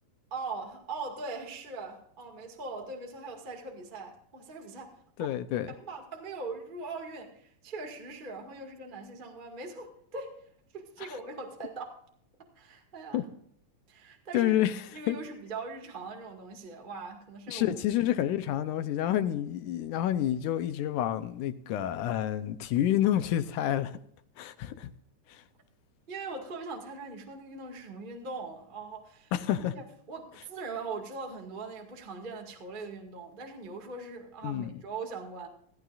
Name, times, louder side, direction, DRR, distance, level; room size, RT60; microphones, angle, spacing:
voice 1, 0.3-5.0 5.8-12.0 12.5-13.2 13.9-14.5 14.9-17.7 26.1-29.3 29.7-35.5, right 3 dB, 20° right, 1.6 m, -41 dB
voice 2, 5.2-5.7 13.1-13.2 14.3-14.8 15.1-15.2 17.5-24.0 24.4-24.9 25.3-25.4 29.3-29.7 34.4-34.8, left 12 dB, 80° left, 2.1 m, -29 dB
17.0 x 15.0 x 2.5 m
omnidirectional pair, 3.8 m